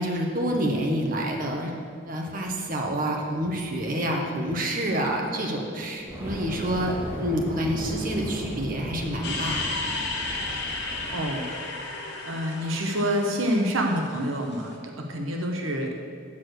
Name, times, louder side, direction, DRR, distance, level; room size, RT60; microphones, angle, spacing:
voice 1, 0.0-1.7 2.1-9.6, right 1 dB, 40° right, 0 dB, 1.1 m, -28 dB
Fire, 6.0-11.3, equal, 10° right, 2.2 m, -36 dB
sound 1, 9.2-14.6, left 3 dB, 55° left, 1.1 m, -33 dB
voice 2, 11.1-11.4 12.3-16.0, equal, 75° right, 2 dB, 0.9 m, -27 dB
8.6 x 6.4 x 6.4 m, 2.3 s
head